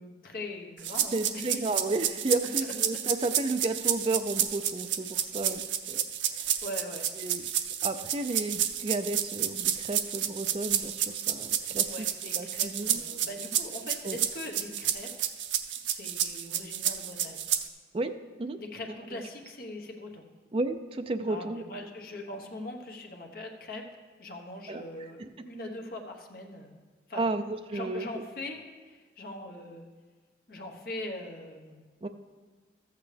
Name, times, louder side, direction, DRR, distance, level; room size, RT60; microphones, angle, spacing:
voice 1, 0.0-1.6 2.0-2.2 5.3-5.6 6.3-7.5 11.8-15.1 15.8-17.5 18.6-20.3 21.3-23.8 24.2-26.8 27.1-27.2 27.7-29.9 30.5-31.8, left 1 dB, 55° left, 2 dB, 1.1 m, -41 dB
sound 1, 0.8-17.7, right 10 dB, 90° right, 0.5 m, -30 dB
voice 2, 1.1-5.6 5.9-6.0 6.3-6.5 7.2-7.5 7.8-11.9 12.3-13.0 14.0-14.2 17.9-18.1 18.4-18.6 20.5-21.6 24.7-24.8 25.2-25.3 27.2-28.0 32.0-32.1, right 2 dB, 30° right, 8 dB, 0.4 m, -32 dB
13.5 x 8.2 x 3.3 m, 1.4 s
head